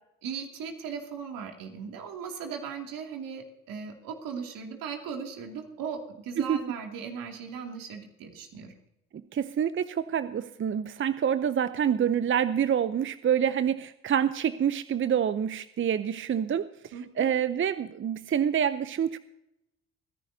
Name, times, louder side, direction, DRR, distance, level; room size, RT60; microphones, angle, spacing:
voice 1, 0.2-8.7 16.9-17.3, right 6 dB, 70° right, 2 dB, 2.7 m, -38 dB
voice 2, 9.3-19.2, right 8 dB, 35° right, 14 dB, 0.6 m, -27 dB
28.0 x 10.5 x 2.8 m, 0.86 s
hypercardioid pair, 55°, 35 cm